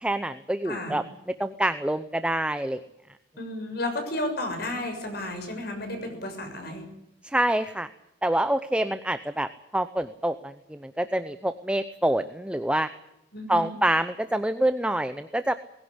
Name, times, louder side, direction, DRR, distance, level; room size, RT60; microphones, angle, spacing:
voice 1, 0.0-1.0 1.4-2.8 7.2-7.9 8.2-12.9 13.5-15.5, right 1 dB, 5° right, 11 dB, 0.7 m, -26 dB
voice 2, 0.6-1.0 3.4-6.9 13.3-13.7, left 1 dB, 60° left, 5 dB, 6.7 m, -32 dB
20.0 x 16.5 x 9.7 m, 0.86 s
head